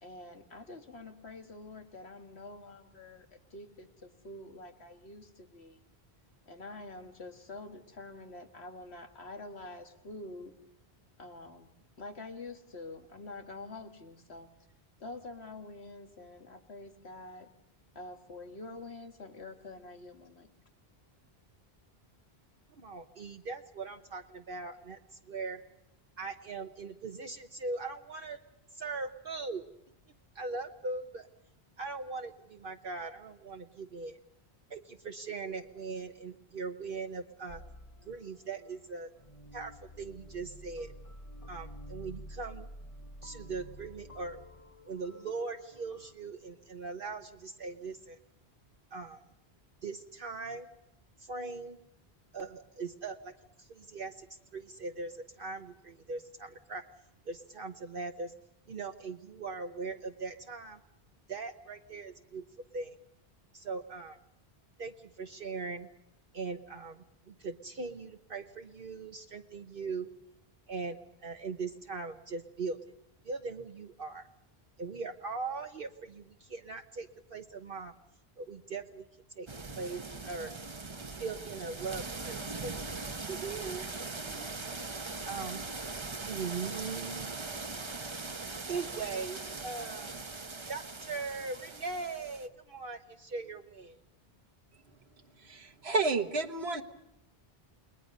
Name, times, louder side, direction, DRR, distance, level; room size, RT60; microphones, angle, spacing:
voice 1, 0.0-5.8 6.5-10.5 11.2-14.5 15.0-17.5 18.0-20.5, left 2 dB, 90° left, 6 dB, 2.1 m, -47 dB
voice 2, 22.8-25.0 25.3-25.6 26.2-28.4 28.7-29.6 30.3-31.3 31.8-34.2 34.7-37.6 38.0-39.1 39.5-40.9 41.5-42.7 43.2-44.4 44.9-48.2 48.9-49.2 49.8-50.7 51.2-51.8 52.3-53.3 53.6-56.8 57.3-58.3 58.7-60.8 61.3-62.4 62.7-63.0 63.5-64.2 64.8-65.9 66.3-70.1 70.7-72.8 73.2-74.3 74.8-77.9 78.4-79.1 79.4-79.5 79.8-80.5 81.1-82.7 83.2-84.5 85.2-85.7 86.2-87.4 88.7-90.2 90.7-94.0, right 4 dB, 60° right, 5 dB, 1.1 m, -40 dB
sound 1, 37.5-46.1, equal, 35° left, 1.3 m, -50 dB
sound 2, 79.5-92.5, right 3 dB, 30° right, 1.0 m, -41 dB
voice 3, 95.4-96.8, right 3 dB, 80° right, 5 dB, 1.6 m, -31 dB
30.0 x 21.0 x 5.4 m, 0.86 s
omnidirectional pair, 1.0 m